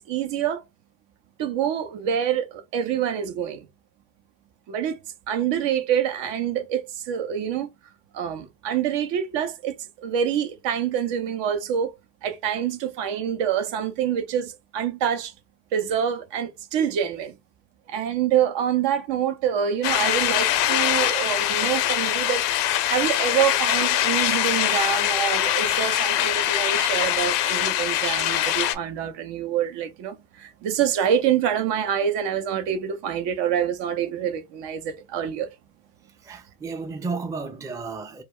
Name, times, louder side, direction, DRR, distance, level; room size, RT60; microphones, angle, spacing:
voice 1, 0.1-0.6 1.4-3.7 4.7-5.0 5.3-7.7 8.1-11.9 12.2-15.3 15.7-17.3 17.9-35.5, right 9 dB, 60° right, 0.7 m, -26 dB
sound 1, 19.8-28.8, left 12 dB, 80° left, 0.5 m, -23 dB
voice 2, 36.2-38.2, right 4 dB, 5° right, 0.4 m, -33 dB
2.1 x 2.1 x 3.5 m
hypercardioid pair, 55°, 48 cm